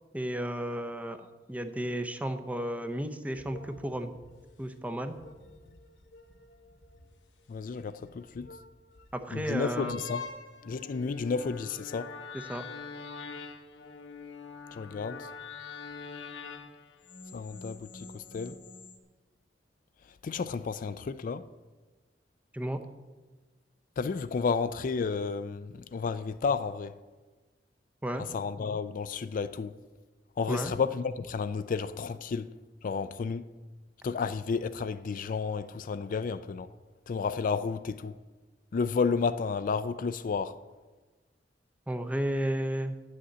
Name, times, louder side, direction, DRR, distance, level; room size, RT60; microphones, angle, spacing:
voice 1, 0.1-4.1 4.6-5.1 9.1-9.9 12.3-12.6 22.5-22.8 28.0-28.2 30.5-30.7 41.9-43.0, right 1 dB, 10° right, 0.6 m, -33 dB
sound 1, 3.3-19.0, left 4 dB, 80° left, 1.0 m, -45 dB
voice 2, 7.5-8.5 9.3-10.3 10.7-12.1 14.7-15.3 17.3-18.5 20.2-21.4 24.0-26.9 28.3-29.7 30.4-32.5 32.8-33.4 34.0-36.7 37.1-38.1 38.7-40.6, left 5 dB, 50° left, 0.4 m, -31 dB
9.6 x 6.4 x 7.9 m
head